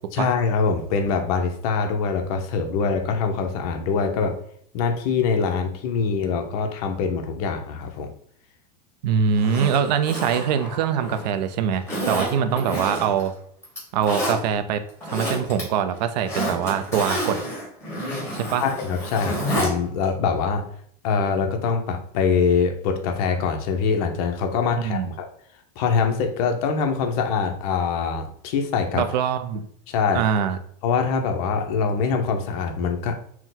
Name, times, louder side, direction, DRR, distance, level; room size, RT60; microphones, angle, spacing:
voice 1, 0.1-4.3 4.7-8.1 18.6-20.7 21.0-25.3 25.8-29.0 29.9-30.2 30.8-33.1, left 5 dB, 60° left, 5 dB, 0.7 m, -24 dB
voice 2, 9.0-13.3 13.9-14.8 15.1-17.4 18.3-18.6 24.8-25.1 28.9-29.7 30.1-30.6, right 7 dB, 80° right, 9 dB, 0.5 m, -23 dB
Zipper (clothing), 9.4-11.3 11.9-13.3 13.6-14.4 14.9-15.6 15.9-19.7 20.0-20.1, equal, 10° left, 1.5 m, -29 dB
4.4 x 2.1 x 3.8 m, 0.63 s
supercardioid pair, 150°, 21 cm